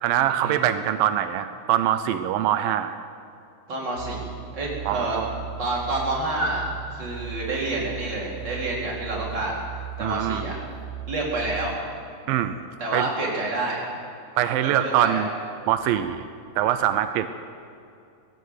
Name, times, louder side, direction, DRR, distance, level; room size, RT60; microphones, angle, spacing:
voice 1, 0.0-3.0 4.9-5.3 10.0-10.4 12.3-12.6 12.9-13.1 14.4-15.3 15.7-16.2 16.6-17.3, right 11 dB, 90° right, 10 dB, 2.0 m, -23 dB
voice 2, 3.7-4.3 4.5-5.2 5.6-6.6 6.9-9.6 10.0-10.6 11.1-11.8 12.8-13.8 14.6-15.3, right 2 dB, 25° right, -3 dB, 4.4 m, -28 dB
sound 1, 4.0-11.8, right 10 dB, 65° right, 2.5 m, -37 dB
20.0 x 16.0 x 8.2 m, 2.5 s
omnidirectional pair, 5.1 m